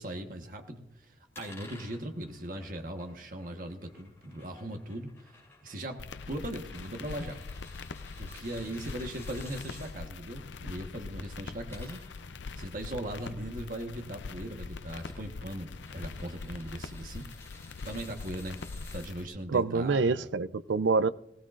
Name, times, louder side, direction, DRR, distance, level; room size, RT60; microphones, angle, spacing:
voice 1, 0.0-5.4 5.6-7.4 8.2-12.2 12.6-17.3 17.8-18.6 18.9-20.3, right 1 dB, 50° right, 4 dB, 1.3 m, -39 dB
sound 1, 1.3-9.9 11.4-19.1, left 3 dB, 15° left, 6.3 m, -55 dB
sound 2, 6.0-19.3, left 4 dB, 85° left, 0.6 m, -43 dB
voice 2, 19.5-21.1, right 4 dB, 85° right, 15 dB, 0.5 m, -26 dB
19.5 x 17.5 x 2.5 m, 0.81 s
head